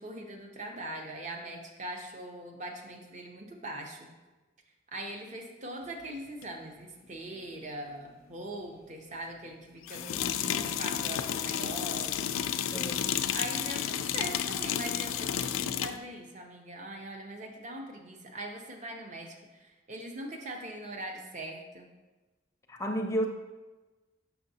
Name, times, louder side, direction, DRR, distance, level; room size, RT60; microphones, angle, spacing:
voice 1, 0.0-4.1 4.9-10.1 10.5-12.7 13.3-21.9, right 1 dB, 35° right, 3 dB, 0.7 m, -41 dB
sound 1, 6.4-6.5 9.9-16.0, left 9 dB, 85° left, 0.3 m, -31 dB
voice 2, 10.0-10.7 12.7-13.1 22.7-23.3, equal, 15° left, 3 dB, 0.5 m, -34 dB
6.5 x 5.7 x 2.8 m, 1.2 s
head